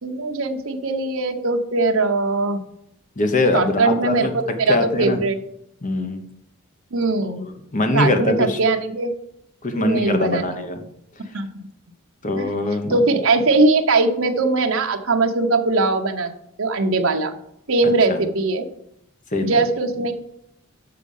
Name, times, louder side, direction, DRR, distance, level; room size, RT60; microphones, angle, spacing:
voice 1, 0.0-2.6 3.5-5.4 6.9-7.4 7.9-9.1 9.7-10.5 11.3-11.7 12.3-12.5 12.9-16.3 16.6-17.3 17.7-18.7 19.4-20.1, right 3 dB, 65° right, 5 dB, 0.8 m, -20 dB
voice 2, 3.2-4.3 4.7-5.2 5.8-6.2 7.7-8.6 9.6-10.8 12.2-13.0 18.1-18.2 19.3-19.6, left 2 dB, 35° left, 6 dB, 1.0 m, -22 dB
6.7 x 6.2 x 5.5 m, 0.78 s
head